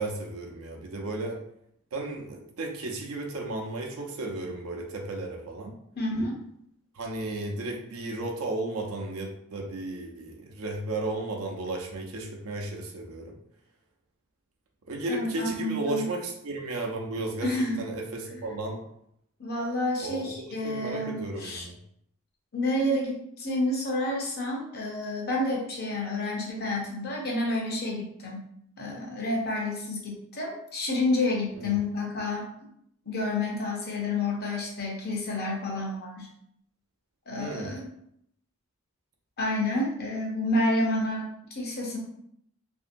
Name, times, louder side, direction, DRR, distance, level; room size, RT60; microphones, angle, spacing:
voice 1, 0.0-1.4 1.9-5.8 6.9-13.4 14.9-18.8 20.0-21.8 31.5-31.7 37.4-37.8, right 2 dB, 80° right, 1 dB, 0.6 m, -34 dB
voice 2, 6.0-6.4 15.1-16.1 17.4-17.8 18.3-18.4 19.4-21.7 22.5-28.5 28.8-32.5 33.1-36.3 37.3-37.9 39.4-42.0, left 2 dB, 45° left, -2 dB, 0.7 m, -29 dB
2.9 x 2.6 x 2.5 m, 0.73 s
head